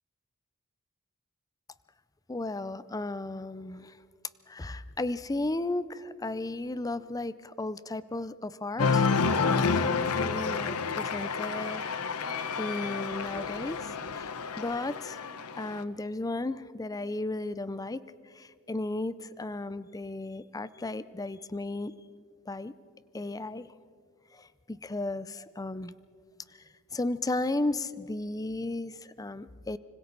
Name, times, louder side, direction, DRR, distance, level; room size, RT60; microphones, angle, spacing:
voice 1, 2.3-3.9 4.5-11.8 12.6-14.3 14.6-15.2 15.6-18.0 18.4-21.9 22.5-22.7 23.1-23.7 24.7-25.9 26.9-29.8, left 2 dB, 15° left, 16 dB, 0.5 m, -34 dB
Cheering, 8.8-15.8, left 5 dB, 80° left, 0.9 m, -29 dB
25.5 x 25.0 x 4.0 m, 2.1 s
head